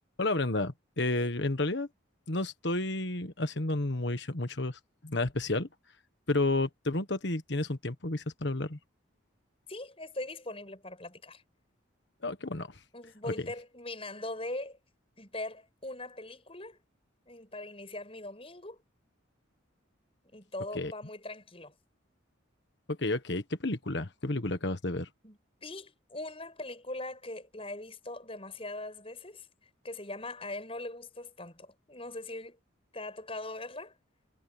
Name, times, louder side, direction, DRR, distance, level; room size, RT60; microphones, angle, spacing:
voice 1, 0.2-1.9 2.3-5.7 6.3-8.8 12.2-12.7 20.7-20.9 22.9-25.1, left 2 dB, 55° left, 1.5 m, -31 dB
voice 2, 9.7-11.4 12.9-14.8 15.2-16.8 17.3-18.8 20.3-21.7 25.2-29.5 29.8-32.6 32.9-33.9, left 2 dB, 30° left, 7.9 m, -41 dB
head